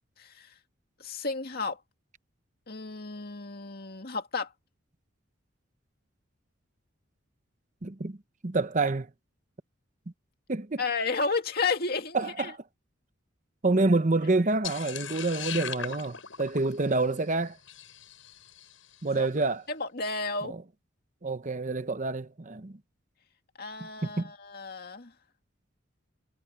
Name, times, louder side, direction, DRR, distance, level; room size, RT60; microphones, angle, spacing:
voice 1, 0.2-0.5 1.0-1.8 2.7-4.5 10.8-12.5 19.1-19.3 19.7-20.5 23.6-25.1, left 4 dB, 50° left, 2.2 m, -32 dB
voice 2, 7.8-8.2 8.4-9.1 10.5-10.8 12.1-12.6 13.6-17.6 19.0-19.6 20.5-20.6 21.2-22.8 23.8-24.3, right 3 dB, 40° right, 0.9 m, -27 dB
sound 1, 14.6-18.9, left 9 dB, 80° left, 7.8 m, -40 dB
head